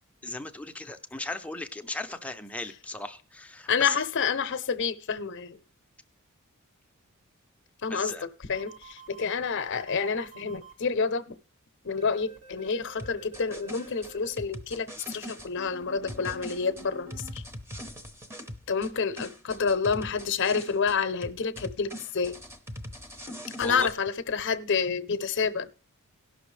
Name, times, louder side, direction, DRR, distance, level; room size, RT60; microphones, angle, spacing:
voice 1, 0.2-4.0 7.9-8.3 23.6-23.9, left 2 dB, 5° left, 0.5 m, -36 dB
voice 2, 3.7-5.6 7.8-11.4 11.8-17.4 18.7-22.4 23.6-25.7, left 5 dB, 55° left, 0.7 m, -29 dB
sound 1, 8.5-10.7 12.0-14.3 15.6-17.3, right 4 dB, 65° right, 1.8 m, -49 dB
sound 2, 13.0-15.5 16.1-18.9 19.2-21.0 21.2-23.9, equal, 10° right, 0.9 m, -41 dB
17.5 x 6.1 x 3.3 m
head